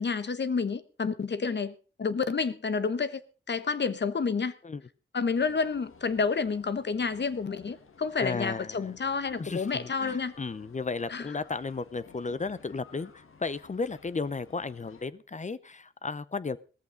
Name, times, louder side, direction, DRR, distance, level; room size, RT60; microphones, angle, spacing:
voice 1, 0.0-3.2 3.5-4.5 5.1-10.3 11.1-11.3, left 5 dB, 55° left, 1.1 m, -29 dB
sound 1, 5.3-15.1, left 5 dB, 80° left, 1.6 m, -55 dB
voice 2, 8.2-8.9 9.4-16.6, left 4 dB, 35° left, 0.7 m, -34 dB
17.0 x 14.0 x 3.9 m
cardioid pair, 75°, 21 cm